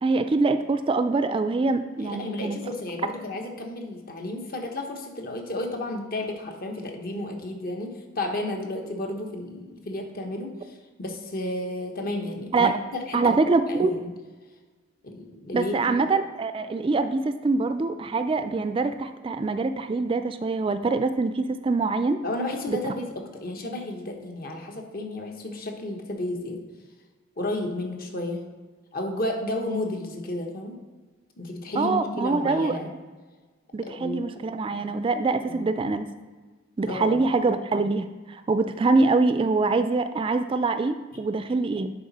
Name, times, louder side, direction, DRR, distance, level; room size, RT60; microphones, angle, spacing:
voice 1, 0.0-2.6 12.5-12.7 13.1-13.9 15.5-22.2 22.7-22.8 31.8-32.8 33.7-36.1 36.8-41.9, right 3 dB, 30° right, 10 dB, 0.3 m, -24 dB
voice 2, 2.0-12.7 13.1-13.3 13.7-14.1 15.0-16.0 22.2-23.1 23.4-26.6 27.4-28.4 28.9-30.8 31.4-32.9 33.8-34.4 35.4-35.7 36.8-37.2 41.1-41.2, left 1 dB, 50° left, 2 dB, 1.2 m, -32 dB
10.5 x 4.0 x 4.2 m, 1.4 s
head